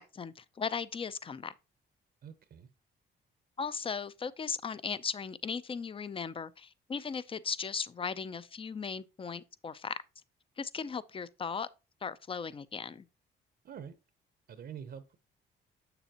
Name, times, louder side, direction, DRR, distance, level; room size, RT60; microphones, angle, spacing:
voice 1, 0.0-1.5 3.6-10.0 10.6-11.7 12.0-13.0, left 6 dB, 25° left, 0.5 m, -37 dB
voice 2, 2.2-2.7 13.6-13.9 14.5-15.2, right 8 dB, 55° right, 0.7 m, -45 dB
7.0 x 6.8 x 2.9 m
cardioid pair, 90°, 20 cm